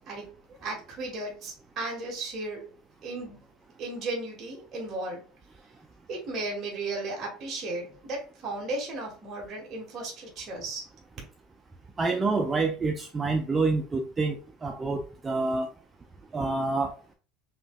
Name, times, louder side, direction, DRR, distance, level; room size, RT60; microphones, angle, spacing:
voice 1, 0.1-0.4 0.6-2.7 3.0-3.5 3.8-5.2 6.1-10.8, right 2 dB, 35° right, -2 dB, 1.5 m, -35 dB
voice 2, 12.0-14.4 14.6-15.7 16.3-16.9, right 3 dB, 20° right, 4 dB, 0.4 m, -27 dB
5.4 x 2.8 x 2.3 m, 0.37 s
supercardioid pair, 130°, 0 cm